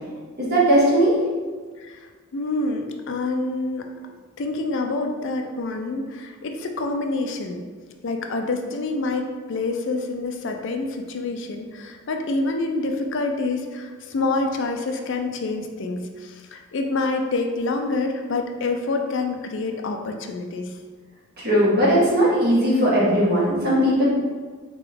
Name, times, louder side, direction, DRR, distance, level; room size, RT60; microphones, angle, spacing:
voice 1, 0.4-1.2 21.4-24.1, right 1 dB, 50° right, -7 dB, 1.5 m, -18 dB
voice 2, 1.8-3.9 4.4-7.6 8.0-20.7, left 3 dB, 60° left, 4 dB, 0.5 m, -27 dB
3.8 x 3.8 x 3.4 m, 1.5 s
head